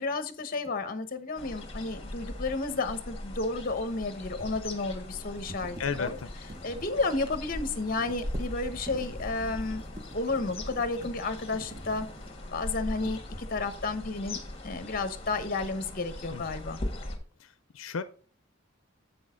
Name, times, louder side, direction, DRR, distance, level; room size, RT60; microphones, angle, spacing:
voice 1, 0.0-6.2 6.6-9.8 10.1-12.1 12.5-16.8, left 3 dB, 45° left, 11 dB, 0.9 m, -32 dB
sound 1, 0.6-0.8 3.9-12.6 13.0-13.8, right 1 dB, 20° right, 0.9 m, -48 dB
sound 2, 1.4-17.2, left 1 dB, 30° left, 1.5 m, -40 dB
voice 2, 5.8-6.3 16.3-16.4 17.4-18.0, left 5 dB, 80° left, 11 dB, 0.5 m, -34 dB
7.9 x 6.3 x 3.7 m, 0.40 s
head